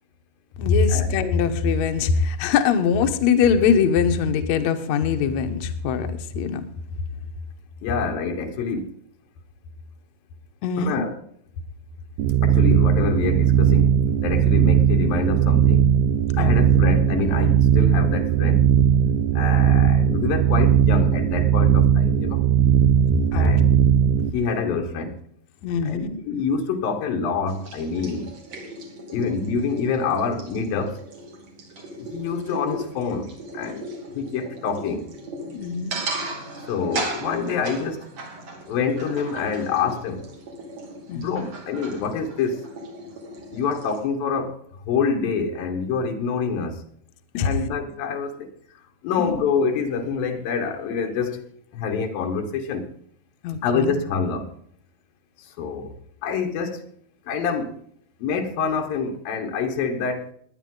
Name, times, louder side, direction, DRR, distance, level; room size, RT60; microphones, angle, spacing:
voice 1, 0.6-6.6 10.6-11.0 16.3-16.9 23.1-23.6 25.6-26.2 35.5-36.0 41.1-41.4 47.3-47.5 49.2-49.4 53.4-54.0, left 6 dB, 65° left, 2.2 m, -22 dB
voice 2, 7.8-8.9 10.8-11.2 12.4-15.9 16.4-18.7 19.3-22.4 23.3-23.7 24.3-25.2 25.8-28.3 29.1-31.0 32.0-33.9 34.1-35.1 36.6-38.1 38.7-40.2 41.1-42.6 43.5-44.6 44.9-46.8 47.4-48.5 49.0-52.9 53.6-54.5 55.4-56.8 57.3-57.8 58.2-60.3, left 5 dB, 85° left, 3.2 m, -26 dB
sound 1, 12.2-24.3, right 9 dB, 75° right, 2.1 m, -18 dB
sound 2, 27.5-44.0, right 2 dB, 50° right, 3.8 m, -37 dB
19.0 x 10.5 x 3.9 m
omnidirectional pair, 4.0 m